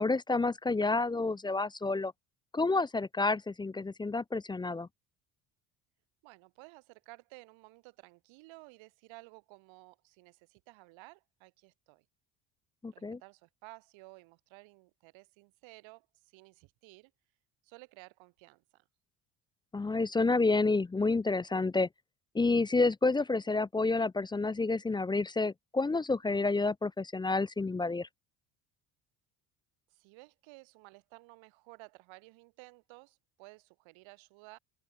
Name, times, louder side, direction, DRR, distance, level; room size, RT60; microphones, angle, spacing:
voice 1, 0.0-2.1 2.5-4.9 12.8-13.2 19.7-21.9 22.3-28.1, left 3 dB, 10° left, 0.4 m, -29 dB
voice 2, 6.2-12.1 12.9-17.1 17.6-18.8 29.9-34.6, right 24 dB, 80° right, 4.0 m, -55 dB
supercardioid pair, 85°, 46 cm